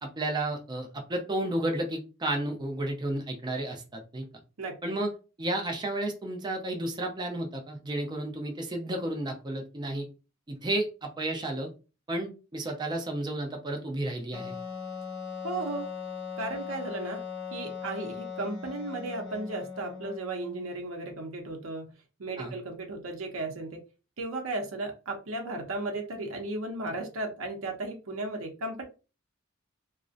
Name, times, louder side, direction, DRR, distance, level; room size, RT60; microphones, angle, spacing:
voice 1, 0.0-4.3 4.8-5.1 5.4-10.1 10.5-11.7 12.1-14.5 22.4-22.5, right 1 dB, 20° right, 2 dB, 0.5 m, -32 dB
voice 2, 4.6-4.9 15.4-15.9 16.4-17.2 17.5-21.9 22.2-23.8 24.2-28.8, right 2 dB, 90° right, 3 dB, 0.6 m, -35 dB
Wind instrument woodwind instrument, 14.3-20.8, left 6 dB, 55° left, 0.5 m, -39 dB
2.5 x 2.1 x 2.4 m, 0.32 s
head